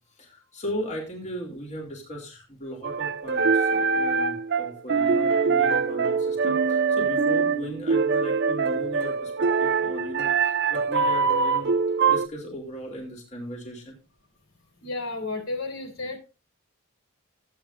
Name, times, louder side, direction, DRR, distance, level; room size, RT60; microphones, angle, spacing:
voice 1, 0.2-14.0, equal, 35° left, 3.0 m, -37 dB
sound 1, 2.8-12.3, right 5 dB, 50° right, 0.6 m, -23 dB
voice 2, 14.8-16.2, left 3 dB, 65° left, 3.8 m, -32 dB
14.5 x 8.9 x 2.6 m
head